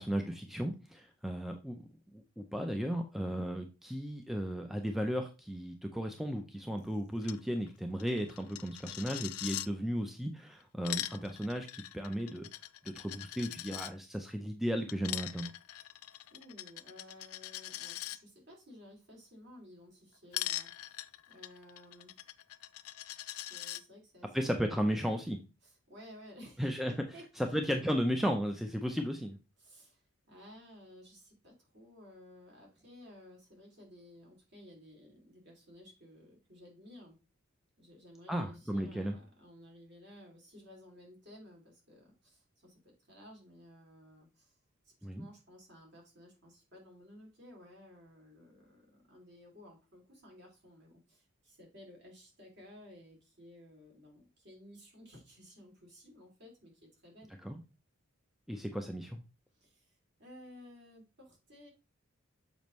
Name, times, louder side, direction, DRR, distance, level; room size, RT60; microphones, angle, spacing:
voice 1, 0.0-12.5 12.8-15.5 24.3-25.4 26.6-26.9 27.4-29.4 38.3-39.2 45.0-45.3 57.4-57.6 58.5-59.2, equal, ahead, 4 dB, 0.5 m, -35 dB
Coin (dropping), 7.2-7.4 7.7-7.8 8.0-9.7 10.6-13.9 14.9-18.2 20.3-23.8, left 15 dB, 85° left, 0.4 m, -42 dB
voice 2, 16.0-22.2 23.3-24.8 25.6-27.6 29.6-37.2 37.8-44.6 44.8-57.3 59.5-61.7, left 1 dB, 50° right, 0 dB, 2.7 m, -55 dB
7.0 x 5.1 x 3.1 m, 0.30 s
head